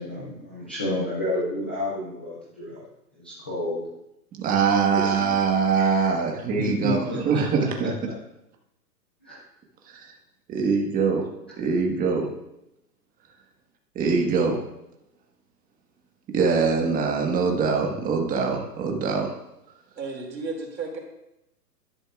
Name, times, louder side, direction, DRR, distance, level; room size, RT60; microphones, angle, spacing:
voice 1, 0.0-2.8 3.1-3.8 4.9-5.1 5.8-6.2 6.6-7.4 7.8-7.9 9.2-9.4, left 1 dB, 10° left, -9 dB, 0.3 m, -30 dB
voice 2, 4.4-7.0 7.2-7.9 9.9-10.1 10.5-11.2 11.6-12.3 13.9-14.6 16.3-19.3, right 5 dB, 15° right, 1 dB, 1.6 m, -23 dB
voice 3, 20.0-21.0, right 4 dB, 85° right, 2 dB, 2.9 m, -33 dB
12.5 x 11.5 x 2.5 m, 0.86 s
hypercardioid pair, 135°, 49 cm